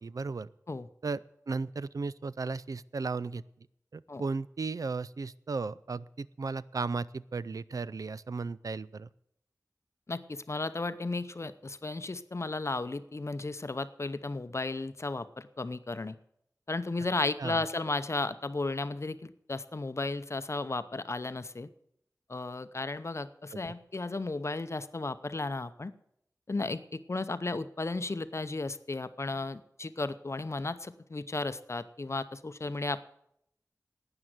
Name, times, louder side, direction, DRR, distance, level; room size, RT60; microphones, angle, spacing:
voice 1, 0.0-0.5 1.0-3.4 3.9-9.1 17.4-17.6 23.5-23.6, right 4 dB, 75° right, 18 dB, 0.4 m, -35 dB
voice 2, 10.1-16.2 16.7-21.7 22.3-25.9 26.5-33.0, left 3 dB, 50° left, 13 dB, 0.7 m, -34 dB
12.5 x 8.9 x 8.0 m, 0.75 s
wide cardioid pair, 55°, 6 cm